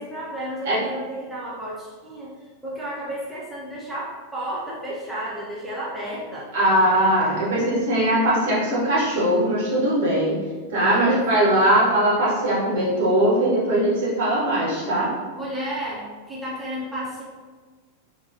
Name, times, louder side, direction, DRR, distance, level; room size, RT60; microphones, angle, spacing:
voice 1, 0.0-6.5 10.8-11.8 15.4-17.2, right 1 dB, 5° right, -7 dB, 0.8 m, -33 dB
voice 2, 6.5-10.4 10.7-15.1, right 1 dB, 55° right, -6 dB, 1.4 m, -20 dB
3.6 x 2.9 x 2.9 m, 1.4 s
figure-of-eight pair, 90°, 0 cm